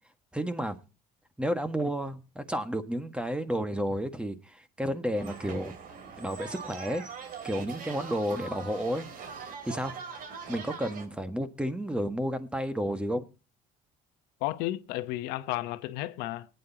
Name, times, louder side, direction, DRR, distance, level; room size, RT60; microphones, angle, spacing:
voice 1, 0.3-0.8 1.4-5.8 6.2-7.0 7.4-9.1 9.6-9.9 10.5-13.2, equal, 5° right, 1.5 m, -31 dB
sound 1, 5.1-11.1, right 5 dB, 60° right, 2.7 m, -42 dB
voice 2, 14.4-16.5, left 16 dB, 80° left, 0.9 m, -33 dB
20.5 x 9.3 x 2.8 m
supercardioid pair, 90°, 16 cm